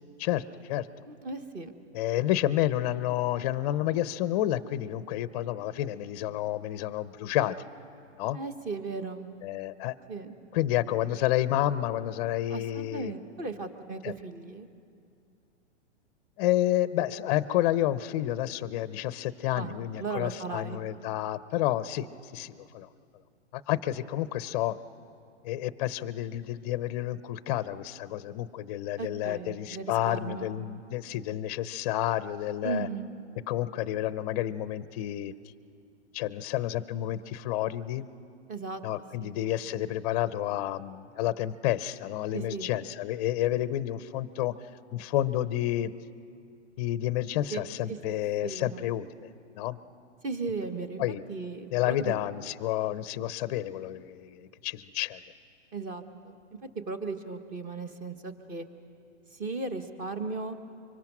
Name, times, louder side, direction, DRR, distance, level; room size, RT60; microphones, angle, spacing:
voice 1, 0.2-0.9 1.9-7.7 8.2-8.4 9.4-9.9 10.5-13.1 14.0-14.1 16.4-22.1 22.3-22.9 23.5-24.8 25.4-32.9 33.5-35.3 36.1-38.1 38.8-44.5 44.9-45.9 46.8-49.1 49.5-49.8 51.0-51.2 51.7-55.2, left 13 dB, 35° left, 15 dB, 0.6 m, -30 dB
voice 2, 1.1-1.7 8.3-9.3 10.1-10.3 12.5-14.7 19.6-20.8 29.0-30.6 32.6-33.1 38.5-38.8 39.2-39.4 42.3-42.7 47.5-47.6 47.9-48.9 50.2-51.0 51.3-52.1 55.7-56.4 56.9-58.7 59.3-60.6, right 4 dB, 25° right, 9 dB, 1.2 m, -36 dB
24.5 x 23.5 x 6.0 m, 2.4 s
hypercardioid pair, 140°, 36 cm